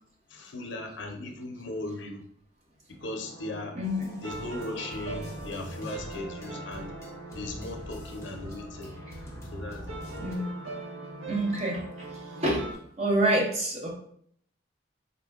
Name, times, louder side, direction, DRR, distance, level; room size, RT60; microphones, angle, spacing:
voice 1, 0.3-2.2 2.9-3.8 4.2-7.0 7.3-9.0 9.5-10.0, left 2 dB, 65° left, 3 dB, 0.6 m, -38 dB
sound 1, 3.0-12.7, right 2 dB, 80° right, 0.7 m, -42 dB
sound 2, 3.8-10.4, equal, 15° left, 0.7 m, -44 dB
voice 2, 3.8-4.2 10.2-10.5 11.3-12.1 12.4-12.6 13.0-13.9, right 1 dB, 30° right, -2 dB, 0.8 m, -27 dB
4.0 x 2.1 x 3.4 m, 0.64 s
head